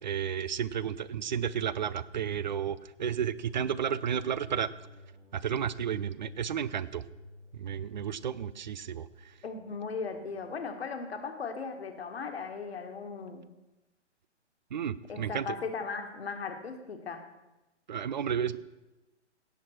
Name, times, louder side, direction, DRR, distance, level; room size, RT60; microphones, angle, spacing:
voice 1, 0.0-4.7 5.3-7.0 7.5-9.3 14.7-15.6 17.9-18.6, right 8 dB, 40° right, 18 dB, 0.5 m, -32 dB
sound 1, 3.1-10.4, left 2 dB, 85° right, 4.3 m, -54 dB
voice 2, 9.4-13.5 15.1-17.2, left 5 dB, 60° left, 6 dB, 1.8 m, -37 dB
17.0 x 7.5 x 4.4 m, 1.0 s
figure-of-eight pair, 130°, 36 cm